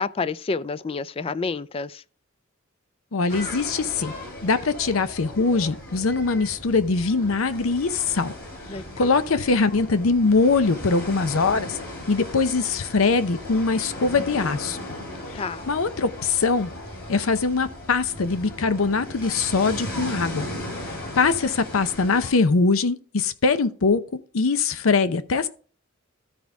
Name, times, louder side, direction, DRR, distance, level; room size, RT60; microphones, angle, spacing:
voice 1, 0.0-2.0 8.7-8.8 15.3-15.7, left 4 dB, 30° left, 0.3 m, -29 dB
voice 2, 3.1-4.1 4.4-8.4 9.0-11.8 12.1-14.8 15.7-16.7 17.1-20.5 21.2-24.0 24.3-25.5, left 4 dB, 85° left, 0.7 m, -22 dB
sound 1, 3.3-22.3, left 1 dB, 50° left, 3.1 m, -37 dB
13.0 x 5.1 x 3.4 m
head